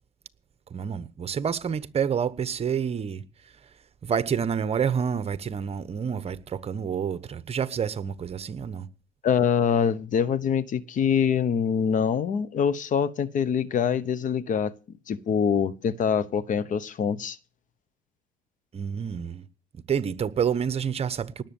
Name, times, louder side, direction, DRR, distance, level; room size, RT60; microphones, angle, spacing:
voice 1, 0.7-3.7 4.0-8.9 18.7-19.4 19.7-21.4, right 7 dB, 35° right, 1.1 m, -28 dB
voice 2, 9.2-14.7 15.1-17.4, left 7 dB, 50° left, 1.0 m, -24 dB
19.0 x 7.4 x 7.1 m
cardioid pair, 110°, 17 cm